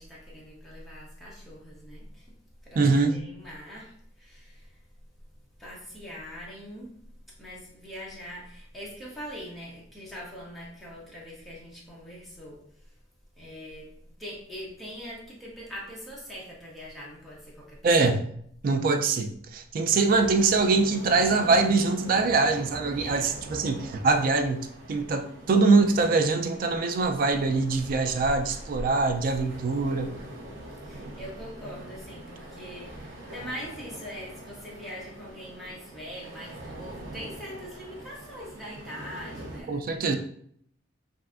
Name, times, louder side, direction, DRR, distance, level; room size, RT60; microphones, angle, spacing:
voice 1, 0.0-2.3 2.6-4.8 5.6-6.9 7.4-12.6 13.4-13.9 14.2-17.8 23.0-23.2 30.8-40.2, equal, ahead, -6 dB, 0.7 m, -42 dB
voice 2, 2.8-3.2 17.8-18.3 18.6-30.1 39.7-40.1, right 3 dB, 50° right, 6 dB, 0.3 m, -23 dB
sound 1, 20.0-39.6, right 1 dB, 85° right, 0.8 m, -43 dB
3.2 x 2.5 x 2.4 m, 0.65 s
head